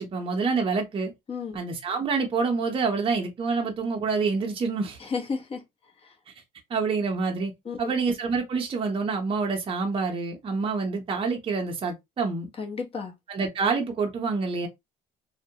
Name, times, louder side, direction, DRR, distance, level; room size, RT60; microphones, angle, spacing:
voice 1, 0.0-1.1 1.5-5.0 6.7-7.5 7.8-12.5 13.3-14.7, right 4 dB, 30° right, 0.6 m, -27 dB
voice 2, 5.0-5.6 6.0-6.1 7.6-7.9 12.6-13.1, left 5 dB, 35° left, 0.8 m, -32 dB
2.2 x 2.1 x 2.7 m
cardioid pair, 110°, 17 cm